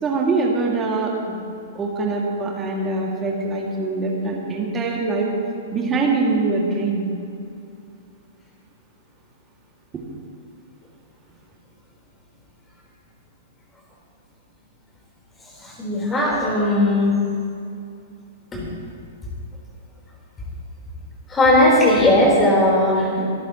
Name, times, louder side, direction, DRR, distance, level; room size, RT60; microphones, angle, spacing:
voice 1, 0.0-1.4 1.8-5.3 5.7-7.1, right 3 dB, 20° right, -2 dB, 2.2 m, -23 dB
voice 2, 15.8-17.1 18.5-18.6 21.3-23.3, left 1 dB, 15° left, -3 dB, 4.0 m, -17 dB
25.0 x 13.5 x 3.0 m, 2.5 s
figure-of-eight pair, 105°, 0 cm